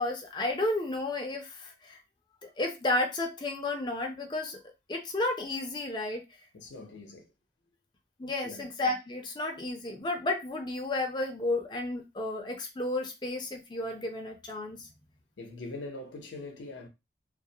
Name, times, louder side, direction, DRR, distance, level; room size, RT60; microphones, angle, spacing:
voice 1, 0.0-2.0 2.4-4.6 4.9-6.2 8.2-14.9, left 2 dB, 25° left, 0.5 m, -32 dB
voice 2, 6.5-7.3 8.2-8.7 15.4-16.9, left 2 dB, 85° left, 0.6 m, -43 dB
2.3 x 2.1 x 2.7 m
head